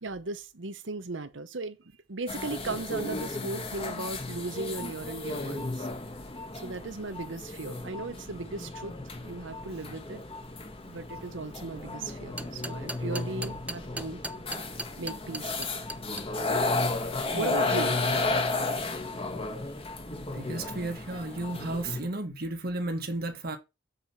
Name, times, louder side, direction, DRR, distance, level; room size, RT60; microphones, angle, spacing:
voice 1, 0.0-5.9 6.5-9.0 9.2-10.2 10.8-14.2 15.0-15.8 17.3-18.0, right 3 dB, 75° right, 1.0 m, -37 dB
sound 1, 2.3-22.0, left 2 dB, 30° left, 1.7 m, -33 dB
sound 2, 12.1-16.2, right 1 dB, 10° right, 0.5 m, -37 dB
voice 2, 20.3-23.6, right 2 dB, 55° right, 1.6 m, -33 dB
7.4 x 5.0 x 6.0 m
head